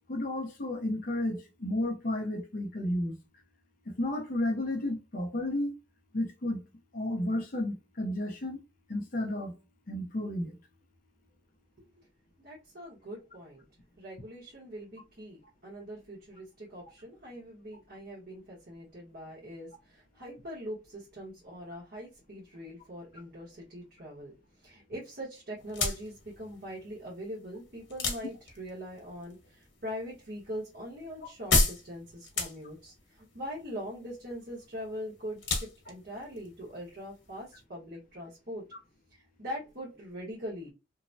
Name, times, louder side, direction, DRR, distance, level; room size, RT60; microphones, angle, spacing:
voice 1, 0.1-3.2 3.9-5.7 6.1-6.6 6.9-8.6 8.9-9.5 9.9-10.5, left 1 dB, 50° left, 0.6 m, -32 dB
voice 2, 12.4-13.6 14.0-24.3 24.6-32.9 33.3-38.6 39.4-40.7, equal, 55° right, 1.2 m, -42 dB
sound 1, 25.6-37.6, left 3 dB, 75° left, 1.1 m, -35 dB
3.0 x 2.1 x 2.6 m
head